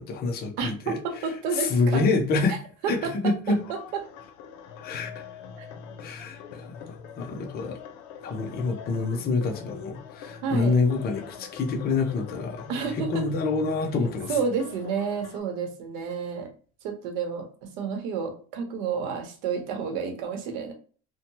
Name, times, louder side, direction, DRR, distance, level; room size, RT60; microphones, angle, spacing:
voice 1, 0.0-2.5 2.9-3.6 4.8-5.2 6.0-6.7 7.2-7.8 8.2-14.3, left 3 dB, 25° left, 2 dB, 0.5 m, -27 dB
voice 2, 0.6-2.0 2.5-2.6 2.8-4.0 5.6-5.7 10.4-10.7 12.7-13.2 14.3-16.5 16.8-17.5 17.8-20.7, right 6 dB, 80° right, 4 dB, 0.9 m, -30 dB
sound 1, 3.5-15.4, left 6 dB, 85° left, 0.6 m, -43 dB
2.7 x 2.1 x 2.8 m, 0.40 s
cardioid pair, 135°, 38 cm